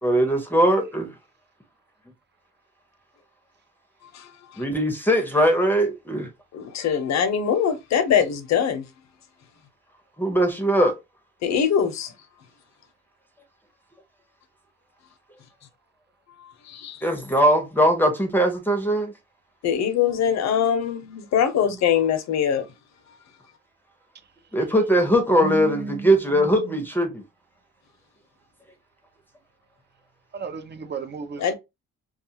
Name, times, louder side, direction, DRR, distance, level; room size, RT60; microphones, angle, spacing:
voice 1, 0.0-1.1 4.6-6.3 10.2-10.9 17.0-19.1 24.5-27.2, equal, 5° left, 0.7 m, -20 dB
voice 2, 4.1-4.6 6.5-8.8 11.4-12.1 16.6-17.0 19.6-22.7 23.1-23.2 31.4-31.5, left 8 dB, 65° left, 0.7 m, -23 dB
voice 3, 25.4-26.8 30.3-31.5, right 5 dB, 35° right, 0.6 m, -34 dB
2.4 x 2.3 x 2.8 m
cardioid pair, 90°, 30 cm